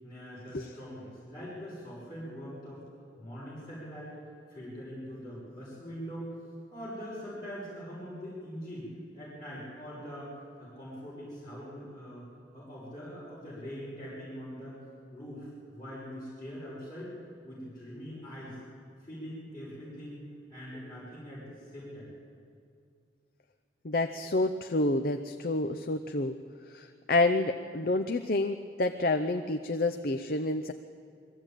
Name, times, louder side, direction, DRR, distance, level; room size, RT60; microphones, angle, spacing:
voice 1, 0.0-2.8 3.2-4.1 4.5-6.3 6.7-10.3 10.6-12.2 12.5-14.8 15.1-17.1 17.4-18.6 19.0-20.2 20.5-22.1, equal, 20° left, -10 dB, 6.2 m, -42 dB
voice 2, 23.8-26.3 26.7-30.7, left 2 dB, 55° left, 7 dB, 0.7 m, -29 dB
22.0 x 15.5 x 9.0 m, 2.2 s
head